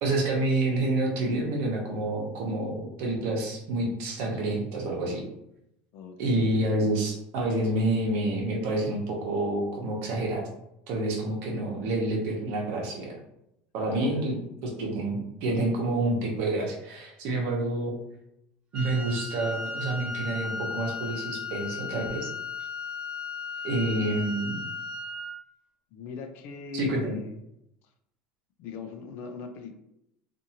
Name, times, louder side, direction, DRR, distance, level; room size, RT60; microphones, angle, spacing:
voice 1, 0.0-5.2 6.2-10.5 10.9-13.2 13.7-17.9 18.7-22.3 23.6-24.6 26.7-27.1, right 2 dB, 70° right, -1 dB, 1.0 m, -28 dB
voice 2, 5.9-6.9 13.8-14.3 23.5-23.7 24.0-24.1 25.9-27.3 28.6-29.8, left 5 dB, 60° left, 6 dB, 0.5 m, -41 dB
Wind instrument woodwind instrument, 18.7-25.4, left 4 dB, 30° right, 0.6 m, -35 dB
2.6 x 2.6 x 2.8 m, 0.81 s
supercardioid pair, 120°, 4 cm